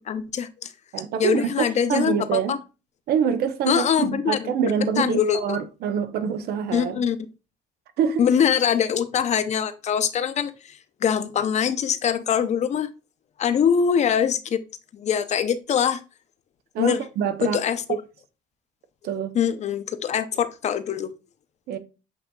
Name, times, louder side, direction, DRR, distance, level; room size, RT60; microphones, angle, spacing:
voice 1, 0.1-0.7 1.2-2.6 3.7-4.5 5.0-5.6 6.7-7.2 8.2-12.9 13.4-14.6 14.9-16.0 16.8-17.0 17.4-17.8 19.3-21.1, left 8 dB, 45° left, 0.5 m, -23 dB
voice 2, 0.9-2.5 3.1-7.0 8.0-8.3 16.7-17.6 17.9-18.0 19.0-19.3 21.7-21.8, right 7 dB, 70° right, 0.6 m, -25 dB
8.0 x 2.7 x 2.2 m
cardioid pair, 110°, 17 cm